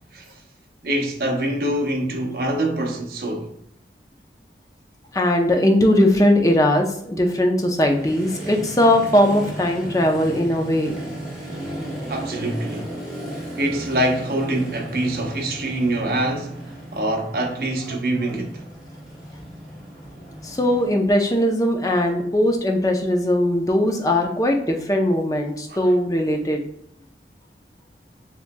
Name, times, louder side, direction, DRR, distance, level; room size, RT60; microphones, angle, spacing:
voice 1, 0.8-3.5 12.1-13.0 13.3-18.6 25.7-25.9, right 1 dB, 60° right, 0.8 m, -25 dB
voice 2, 5.1-11.0 20.4-26.6, left 1 dB, 20° left, 0.6 m, -19 dB
Motorcycle, 7.9-20.9, right 1 dB, 5° right, 1.6 m, -35 dB
7.0 x 2.9 x 2.2 m
head